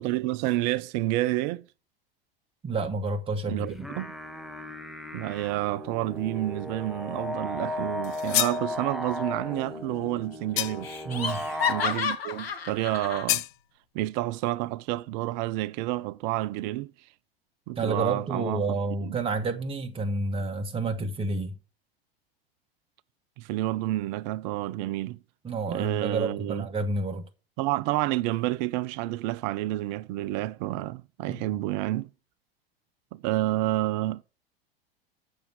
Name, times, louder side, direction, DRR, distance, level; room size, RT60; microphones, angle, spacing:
voice 1, 0.0-1.6 3.5-4.1 5.1-11.0 11.7-13.4 13.9-16.9 17.7-19.2 23.4-25.2 25.7-26.7 27.6-32.1 33.1-34.2, right 16 dB, 50° right, 0.6 m, -29 dB
voice 2, 2.6-3.9 11.0-11.5 17.8-21.5 25.4-27.2 31.3-31.6, right 3 dB, 20° right, 1.5 m, -29 dB
sound 1, 3.6-11.9, left 1 dB, ahead, 1.4 m, -36 dB
sound 2, 8.0-8.7 10.6-11.0 13.3-13.5, left 18 dB, 55° left, 0.6 m, -28 dB
Laughter, 9.5-10.1 10.3-10.4 10.8-13.3, left 6 dB, 80° left, 1.7 m, -31 dB
9.6 x 7.0 x 6.2 m
hypercardioid pair, 85°, 30 cm